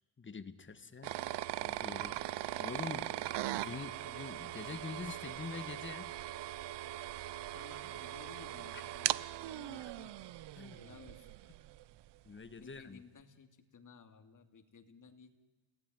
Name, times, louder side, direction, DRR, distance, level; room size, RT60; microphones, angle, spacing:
voice 1, 0.2-1.1 1.6-2.2 2.6-3.1 3.6-6.1 8.7-8.8 10.6-10.8 12.2-13.0, left 4 dB, 25° left, 11 dB, 1.5 m, -45 dB
sound 1, 1.0-11.8, right 14 dB, 60° right, 0.7 m, -40 dB
voice 2, 7.5-10.2 10.8-11.3 12.6-15.3, left 5 dB, 40° left, 6 dB, 2.6 m, -57 dB
29.0 x 17.0 x 9.5 m, 1.2 s
cardioid pair, 115°, 46 cm